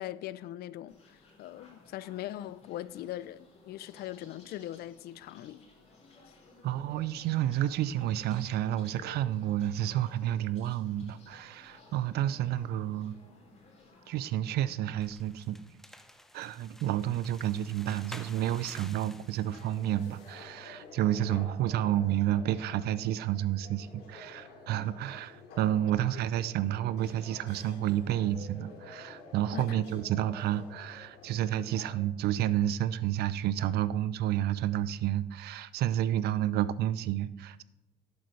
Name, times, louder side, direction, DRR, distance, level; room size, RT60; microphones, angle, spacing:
voice 1, 0.0-5.6 29.5-29.8, left 13 dB, 70° left, 0.4 m, -41 dB
sound 1, 0.9-14.6, left 2 dB, 40° left, 3.0 m, -57 dB
voice 2, 6.6-13.2 14.1-15.6 16.3-37.6, right 12 dB, 70° right, 0.5 m, -30 dB
sound 2, 14.9-20.5, equal, ahead, 0.6 m, -51 dB
sound 3, 19.5-32.0, left 3 dB, 85° left, 2.5 m, -50 dB
11.0 x 8.2 x 3.2 m
cardioid pair, 110°, 17 cm